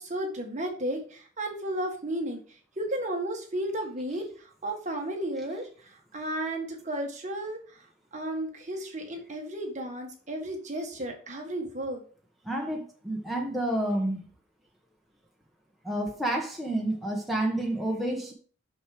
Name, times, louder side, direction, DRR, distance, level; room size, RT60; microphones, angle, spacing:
voice 1, 0.0-2.4 2.8-7.8 8.1-12.0, right 1 dB, 35° right, 2 dB, 1.7 m, -33 dB
voice 2, 12.4-14.2 15.8-18.3, right 1 dB, ahead, -2 dB, 1.2 m, -29 dB
6.5 x 6.3 x 5.0 m, 0.42 s
head